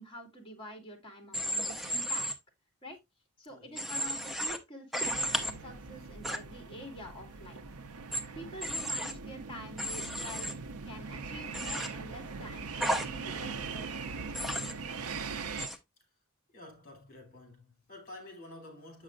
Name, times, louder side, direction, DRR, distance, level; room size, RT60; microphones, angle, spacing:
voice 1, 0.0-2.3 2.8-3.0 3.4-7.8 8.3-10.6 10.9-14.2 15.1-15.3, equal, 25° left, 2.2 m, -47 dB
Human voice / Train, 1.3-2.3 3.8-4.6 4.9-5.5 6.2-6.4 8.1-8.2 8.6-9.1 9.8-10.5 11.5-11.9 12.8-13.1 14.3-14.7 15.6-15.8, equal, ahead, 0.8 m, -33 dB
sound 1, 5.0-15.7, right 4 dB, 85° right, 0.7 m, -41 dB
voice 2, 16.5-19.0, left 1 dB, 40° left, 3.3 m, -50 dB
7.6 x 6.1 x 2.4 m
head